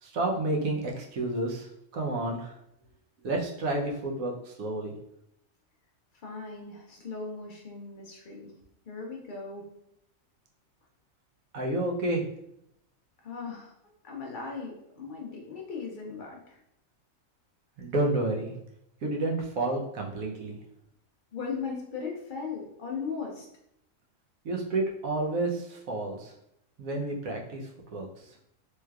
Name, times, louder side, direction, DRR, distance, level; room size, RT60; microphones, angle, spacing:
voice 1, 0.0-1.7 1.9-2.5 3.2-4.9 11.5-12.3 17.8-18.5 19.0-20.6 24.4-26.3 26.8-27.6 27.9-28.1, right 2 dB, 75° right, -1 dB, 1.1 m, -30 dB
voice 2, 6.2-8.5 8.9-9.7 13.2-13.7 14.0-16.6 21.3-23.5, left 5 dB, 80° left, -1 dB, 0.4 m, -38 dB
3.2 x 3.0 x 2.3 m, 0.77 s
omnidirectional pair, 1.5 m